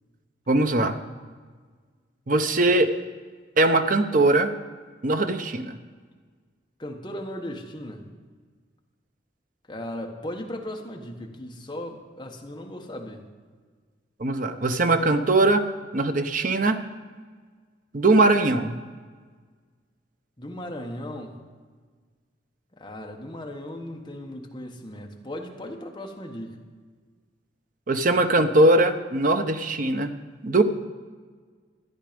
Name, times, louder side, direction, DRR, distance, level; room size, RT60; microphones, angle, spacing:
voice 1, 0.5-1.0 2.3-2.9 3.6-4.5 5.0-5.8 14.2-15.7 15.9-16.8 17.9-18.8 27.9-30.1 30.4-30.6, right 2 dB, 45° right, 8 dB, 0.7 m, -21 dB
voice 2, 6.8-8.0 9.7-13.2 20.4-21.4 22.8-26.5, left 1 dB, 25° left, 1 dB, 1.3 m, -37 dB
13.5 x 10.0 x 5.2 m, 1.5 s
head